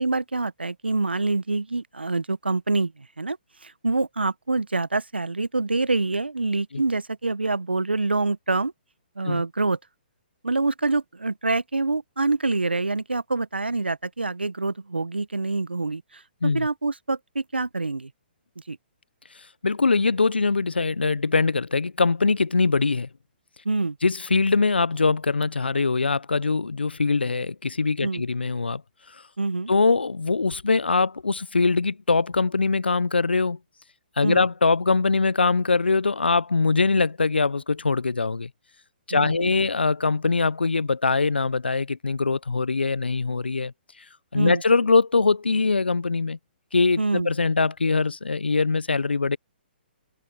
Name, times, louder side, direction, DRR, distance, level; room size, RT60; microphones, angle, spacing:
voice 1, 0.0-2.9 3.2-3.4 3.6-8.7 9.2-9.8 10.4-16.0 16.4-18.1 18.7-18.8 23.6-24.0 28.0-28.2 29.4-29.7 34.2-34.4 39.1-39.5 44.3-44.6 47.0-47.3, right 3 dB, 85° right, 1.1 m, -26 dB
voice 2, 19.6-23.1 24.0-28.8 29.7-33.6 34.2-38.5 39.1-43.7 44.3-46.4 46.7-49.4, left 4 dB, 80° left, 0.8 m, -22 dB
figure-of-eight pair, 130°, 6 cm